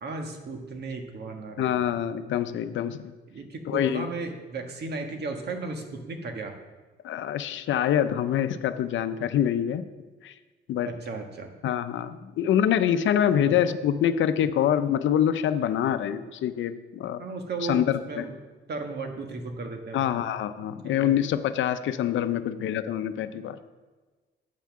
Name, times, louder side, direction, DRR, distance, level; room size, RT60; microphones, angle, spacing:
voice 1, 0.0-1.9 3.3-6.5 10.8-11.5 13.4-13.6 17.2-18.4 18.7-20.1 20.8-21.1, right 3 dB, 55° right, 4 dB, 1.6 m, -35 dB
voice 2, 1.6-3.1 3.7-4.1 7.0-9.8 10.2-10.3 10.7-10.9 11.6-17.2 17.7-18.2 19.9-23.6, left 10 dB, 75° left, 11 dB, 0.6 m, -25 dB
8.4 x 5.7 x 7.3 m, 1.3 s
cardioid pair, 90°, 20 cm